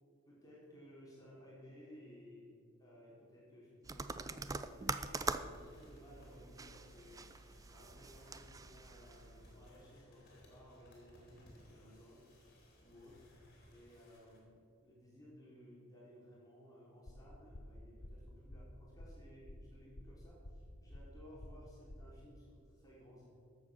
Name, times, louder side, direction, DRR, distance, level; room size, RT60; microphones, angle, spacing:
voice 1, 0.3-7.2 7.7-12.3 12.8-13.2 13.7-23.3, equal, 15° left, -6 dB, 3.3 m, -58 dB
sound 1, 3.8-9.7, right 4 dB, 15° right, 0.3 m, -44 dB
sound 2, 4.7-14.4, equal, 45° left, 3.2 m, -63 dB
sound 3, 17.1-22.2, left 1 dB, 65° left, 1.0 m, -52 dB
13.5 x 7.4 x 6.2 m, 2.4 s
head